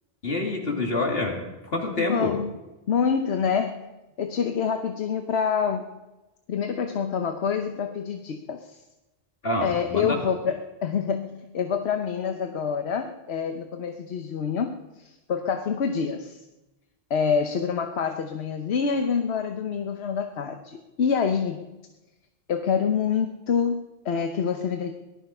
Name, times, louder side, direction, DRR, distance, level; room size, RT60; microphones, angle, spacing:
voice 1, 0.2-1.4 1.7-2.3 9.4-10.2, left 2 dB, 70° left, 0 dB, 3.0 m, -26 dB
voice 2, 1.9-2.5 2.9-3.8 4.2-5.9 6.5-8.8 9.6-16.4 17.1-21.7 22.5-24.9, left 6 dB, 85° left, 6 dB, 1.2 m, -27 dB
18.5 x 12.0 x 5.5 m, 1.1 s
omnidirectional pair, 1.1 m